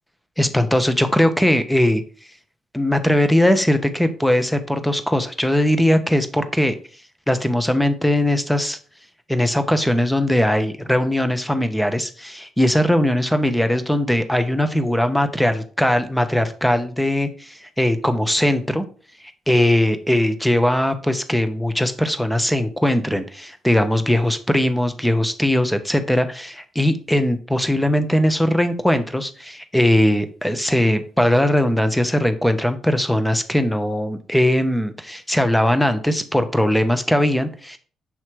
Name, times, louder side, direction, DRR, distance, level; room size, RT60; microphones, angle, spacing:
voice 1, 0.4-2.0 2.7-6.8 7.3-8.8 9.3-18.9 19.5-37.8, left 1 dB, 5° left, 10 dB, 0.8 m, -20 dB
7.1 x 3.2 x 4.5 m, 0.40 s
cardioid pair, 90°, 0 cm